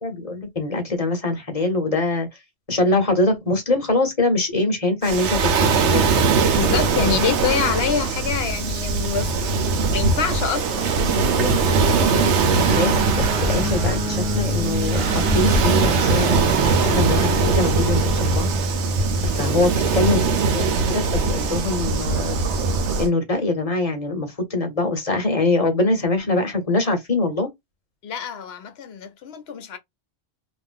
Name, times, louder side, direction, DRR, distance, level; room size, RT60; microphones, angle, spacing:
voice 1, 0.0-2.3 2.7-6.2 11.0-16.4 16.8-18.5 19.2-22.4 23.0-27.5, left 2 dB, 35° left, 1.0 m, -23 dB
Waves surf, 5.0-23.1, right 4 dB, 85° right, 1.0 m, -21 dB
voice 2, 6.4-9.6 9.9-10.9 19.4-19.6 28.0-29.8, left 7 dB, 70° left, 0.9 m, -26 dB
Guitar, 12.6-20.3, right 1 dB, 30° right, 0.7 m, -26 dB
2.5 x 2.4 x 3.6 m
omnidirectional pair, 1.2 m